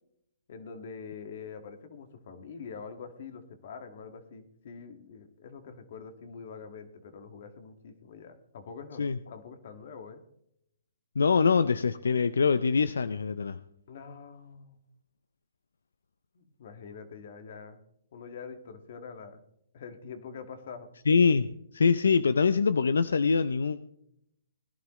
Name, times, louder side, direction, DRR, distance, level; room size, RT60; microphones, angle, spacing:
voice 1, 0.5-10.2 13.9-14.8 16.3-17.8 18.1-19.4 19.7-20.9, left 5 dB, 55° left, 7 dB, 1.9 m, -45 dB
voice 2, 11.2-13.6 21.1-23.8, left 5 dB, 85° left, 14 dB, 0.5 m, -24 dB
19.5 x 11.0 x 3.1 m, 0.76 s
hypercardioid pair, 145°, 0 cm